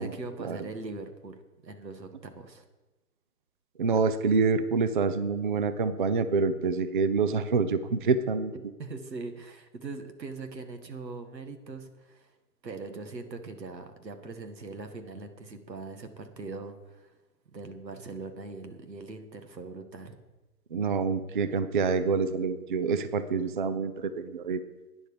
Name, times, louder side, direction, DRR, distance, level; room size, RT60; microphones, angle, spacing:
voice 1, 0.0-2.6 8.8-12.3 12.6-17.1 17.5-20.2, right 3 dB, 85° right, 6 dB, 1.8 m, -41 dB
voice 2, 3.8-8.5 20.7-24.6, right 4 dB, 35° right, 12 dB, 0.5 m, -27 dB
11.5 x 9.8 x 5.0 m, 1.1 s
figure-of-eight pair, 135°, 49 cm